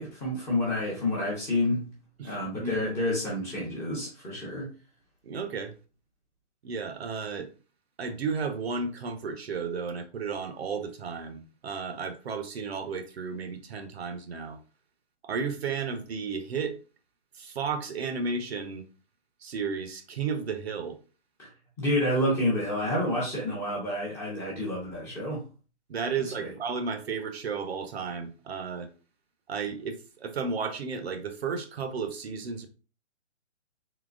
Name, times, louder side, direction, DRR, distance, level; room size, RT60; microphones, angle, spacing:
voice 1, 0.0-1.8 2.2-4.7 21.4-21.5 21.8-25.4 26.4-26.5, left 1 dB, 5° left, 0.6 m, -29 dB
voice 2, 2.2-2.8 5.2-5.7 6.6-7.5 8.0-14.6 15.2-16.8 17.4-18.9 19.4-21.0 25.9-28.9 29.5-32.7, right 5 dB, 55° right, 0.7 m, -33 dB
3.9 x 2.7 x 2.4 m
hypercardioid pair, 145°, 37 cm